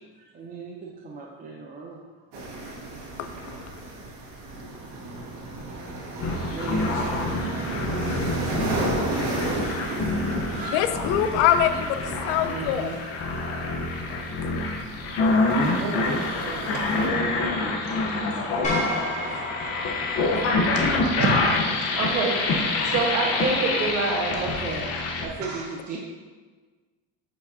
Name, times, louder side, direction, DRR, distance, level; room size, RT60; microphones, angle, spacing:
voice 1, 0.2-2.0 2.6-2.7 5.9-6.0 6.5-10.8 12.4-13.0 15.8-18.1 19.2-19.4 24.4-24.9 25.2-26.0, right 4 dB, 30° right, -2 dB, 0.6 m, -38 dB
sound 1, 2.3-17.1, right 2 dB, 80° right, 1.5 m, -34 dB
sound 2, 6.2-25.3, left 3 dB, 55° left, 0.9 m, -26 dB
voice 2, 10.7-13.1 14.4-14.5, left 10 dB, 75° left, 10 dB, 0.5 m, -24 dB
voice 3, 15.2-15.8 16.5-18.0 18.7-19.4 20.4-21.3 21.9-22.4 22.8-24.4 25.4-25.7, right 4 dB, 50° right, 0 dB, 1.3 m, -29 dB
sound 3, 18.6-21.0, left 1 dB, 25° left, 1.9 m, -31 dB
7.8 x 4.8 x 2.7 m, 1.4 s
cardioid pair, 130°, 30 cm